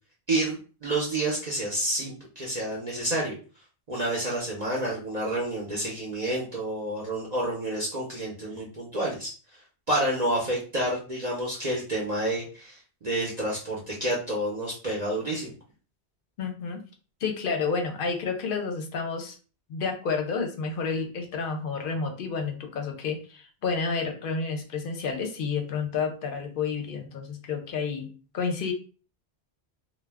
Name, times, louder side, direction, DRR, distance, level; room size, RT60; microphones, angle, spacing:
voice 1, 0.3-3.3 3.9-9.3 9.9-15.5, right 1 dB, 45° right, -3 dB, 0.7 m, -29 dB
voice 2, 16.4-16.8 17.2-19.4 19.7-28.7, left 5 dB, 60° left, 4 dB, 0.7 m, -30 dB
2.3 x 2.1 x 3.3 m, 0.37 s
omnidirectional pair, 1.1 m